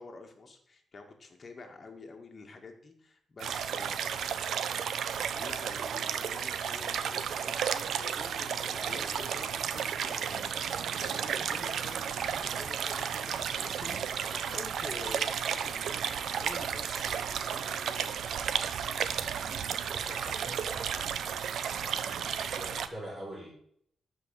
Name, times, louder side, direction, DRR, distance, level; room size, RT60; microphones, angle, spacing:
voice 1, 0.0-4.7 5.3-16.0 16.4-18.3, left 3 dB, 30° left, 4 dB, 2.1 m, -48 dB
sound 1, 3.4-22.9, right 8 dB, 70° right, 0.8 m, -33 dB
sound 2, 11.0-17.7, right 3 dB, 45° right, 2.2 m, -57 dB
voice 2, 19.9-21.3 21.6-23.5, right 1 dB, 20° right, -6 dB, 4.8 m, -45 dB
12.5 x 5.6 x 7.7 m, 0.66 s
cardioid pair, 140°, 0 cm